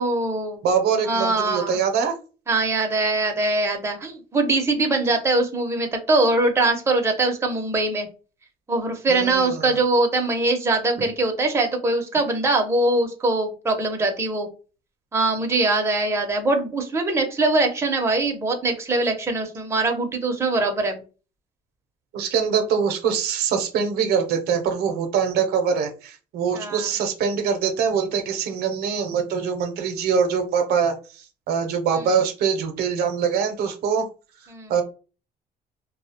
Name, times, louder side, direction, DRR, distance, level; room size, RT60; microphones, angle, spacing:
voice 1, 0.0-0.7 1.1-1.8 2.5-8.1 8.7-14.5 15.1-21.0 26.5-26.9 32.0-32.1 34.5-34.7, right 2 dB, 15° right, 3 dB, 0.5 m, -22 dB
voice 2, 0.6-2.1 9.1-9.8 22.1-34.1 34.7-34.8, right 6 dB, 70° right, 6 dB, 0.6 m, -23 dB
2.3 x 2.0 x 2.7 m, 0.34 s
cardioid pair, 110°, 17 cm